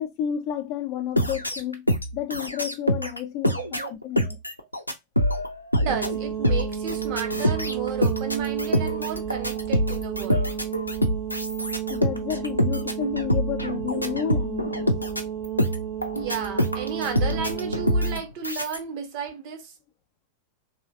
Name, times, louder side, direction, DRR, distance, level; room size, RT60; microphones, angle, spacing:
voice 1, 0.0-1.9 2.1-4.4 11.9-14.9, left 10 dB, 40° left, 0.5 m, -31 dB
sound 1, 1.2-3.2 3.4-18.8, equal, 85° left, 0.5 m, -25 dB
voice 2, 3.4-3.9 5.8-10.5 16.1-19.7, right 6 dB, 45° right, 0.9 m, -33 dB
sound 2, 5.9-18.2, right 9 dB, 70° right, 1.4 m, -32 dB
3.2 x 2.8 x 2.6 m
figure-of-eight pair, 90°, 0 cm